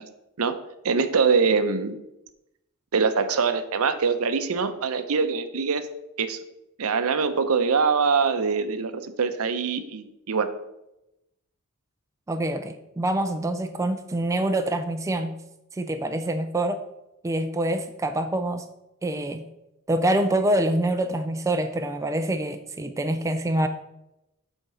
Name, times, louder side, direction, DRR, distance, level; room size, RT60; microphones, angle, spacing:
voice 1, 0.8-2.0 2.9-5.9 6.2-6.4 6.8-10.5, right 5 dB, 70° right, 10 dB, 0.6 m, -23 dB
voice 2, 12.3-15.3 15.7-16.8 17.2-18.6 19.0-19.4 19.9-23.7, right 1 dB, 15° right, 7 dB, 0.3 m, -25 dB
8.0 x 3.6 x 5.6 m, 0.90 s
head